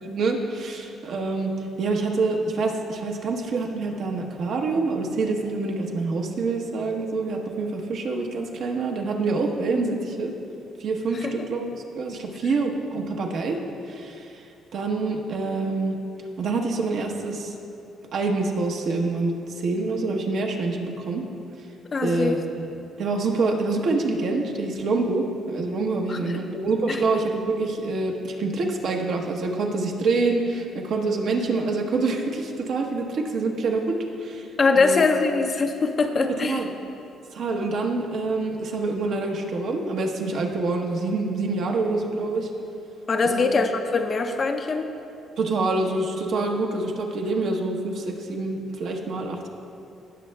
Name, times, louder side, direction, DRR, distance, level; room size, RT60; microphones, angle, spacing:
voice 1, 0.0-10.3 10.8-11.7 12.0-13.6 13.9-14.4 14.7-16.0 16.4-17.5 18.1-21.2 22.0-22.7 23.0-34.5 34.7-35.1 36.4-36.7 37.3-42.5 43.2-43.5 45.4-49.5, right 3 dB, 65° right, 2 dB, 1.0 m, -26 dB
voice 2, 21.9-22.4 26.1-26.4 26.9-27.0 34.6-36.6 43.1-44.9, left 4 dB, 40° left, 6 dB, 0.5 m, -22 dB
17.0 x 6.4 x 2.3 m, 2.7 s
cardioid pair, 95°, 0 cm